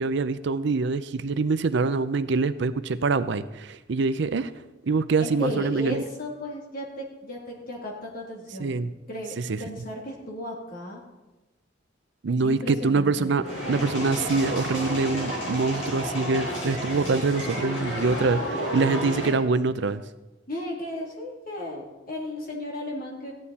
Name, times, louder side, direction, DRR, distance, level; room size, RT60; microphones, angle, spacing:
voice 1, 0.0-4.5 4.8-6.0 8.6-8.9 9.5-9.6 12.2-20.0, right 4 dB, 65° right, 12 dB, 0.5 m, -25 dB
voice 2, 5.2-8.8 9.1-11.0 12.4-13.4 20.5-23.3, left 1 dB, 50° left, -1 dB, 2.8 m, -35 dB
sound 1, 13.4-19.3, equal, 70° left, 4.6 m, -31 dB
15.0 x 10.5 x 4.2 m, 1.0 s
head